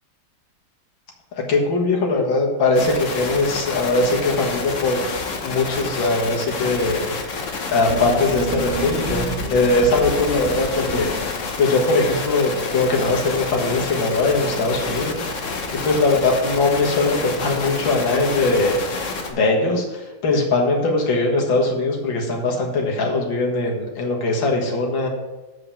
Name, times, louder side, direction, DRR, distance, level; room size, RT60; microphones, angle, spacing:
voice 1, 1.3-5.0 5.4-7.2 7.7-15.4 15.7-18.8 19.3-25.1, left 2 dB, 80° left, -1 dB, 2.3 m, -21 dB
sound 1, 2.7-19.3, left 4 dB, 50° left, 1.2 m, -29 dB
sound 2, 7.9-11.4, right 4 dB, 40° right, 1.9 m, -31 dB
7.9 x 4.9 x 6.9 m, 1.1 s
omnidirectional pair, 2.1 m